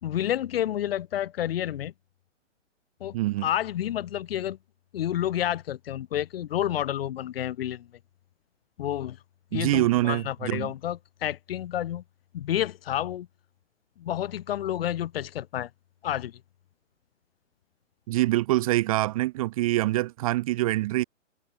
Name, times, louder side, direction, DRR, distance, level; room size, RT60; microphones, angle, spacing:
voice 1, 0.0-1.9 3.0-3.1 3.4-4.6 4.9-7.9 8.8-9.2 9.5-12.0 12.3-13.3 14.0-15.7 16.0-16.4, left 11 dB, 50° left, 2.6 m, -29 dB
voice 2, 3.1-3.5 9.5-10.7 18.1-21.0, right 17 dB, 30° right, 0.8 m, -25 dB
hypercardioid pair, 135°, 38 cm